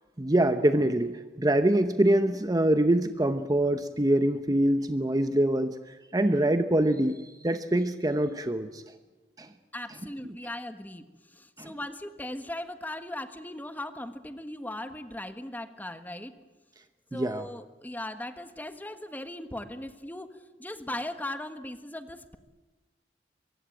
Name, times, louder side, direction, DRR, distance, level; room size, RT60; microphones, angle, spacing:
voice 1, 0.2-5.8 6.1-8.8 9.4-9.5 10.2-10.4 11.6-11.7 17.1-17.4, right 1 dB, 20° right, 9 dB, 0.9 m, -24 dB
voice 2, 9.7-11.1 11.3-16.3 17.1-20.3 20.6-22.4, left 1 dB, 10° left, 9 dB, 1.5 m, -38 dB
23.5 x 23.0 x 9.1 m, 1.2 s
head